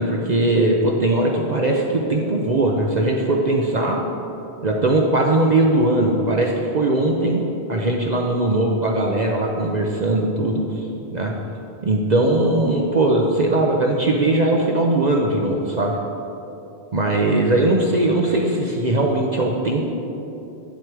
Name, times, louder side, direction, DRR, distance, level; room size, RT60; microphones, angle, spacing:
voice 1, 0.0-4.0 4.6-7.4 7.7-10.9 11.1-11.3 11.8-16.0 16.9-19.8, right 2 dB, 45° right, 0 dB, 0.8 m, -20 dB
9.1 x 7.8 x 4.7 m, 2.9 s
omnidirectional pair, 1.1 m